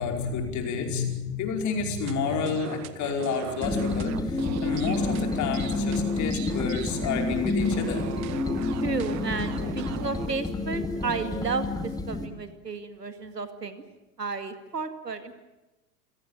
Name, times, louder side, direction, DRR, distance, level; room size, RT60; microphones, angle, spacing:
voice 1, 0.0-8.1, left 5 dB, 35° left, 4 dB, 5.2 m, -30 dB
sound 1, 2.0-10.3, right 14 dB, 35° right, 1.3 m, -39 dB
sound 2, 3.6-12.3, left 3 dB, 10° left, 2.4 m, -29 dB
voice 2, 8.8-13.8 14.2-15.3, right 4 dB, 85° right, 10 dB, 2.2 m, -33 dB
28.0 x 18.0 x 9.2 m, 1.0 s
figure-of-eight pair, 90°, 48 cm